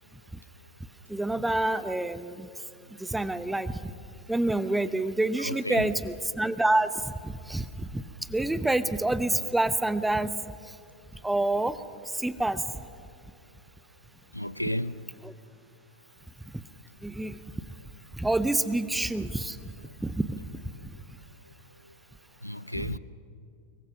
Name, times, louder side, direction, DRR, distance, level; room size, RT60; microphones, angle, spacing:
voice 1, 1.1-2.5 3.0-3.9 4.3-8.0 8.3-10.3 11.2-11.8 12.1-12.6 15.2-15.3 17.0-17.4 18.2-19.6 20.0-20.2 22.8-23.0, right 2 dB, 5° right, 0.9 m, -27 dB
voice 2, 5.4-5.9 14.3-15.0 22.4-23.0, equal, 90° left, 0.5 m, -32 dB
25.5 x 23.0 x 6.0 m
figure-of-eight pair, 90°, 0 cm